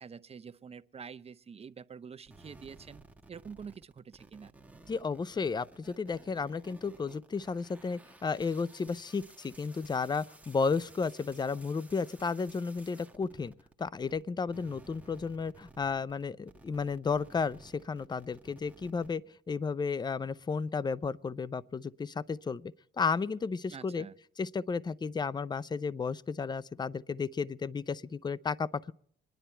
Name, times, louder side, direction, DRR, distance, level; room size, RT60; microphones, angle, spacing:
voice 1, 0.0-3.0 3.3-4.5 23.7-24.2, right 6 dB, 30° right, 0.5 m, -47 dB
sound 1, 2.3-14.2 14.5-19.1, right 2 dB, 5° right, 1.2 m, -56 dB
voice 2, 4.9-13.5 13.8-19.2 19.5-24.0 24.4-28.9, left 5 dB, 20° left, 0.5 m, -33 dB
25.5 x 10.0 x 4.4 m
cardioid pair, 90°, 20 cm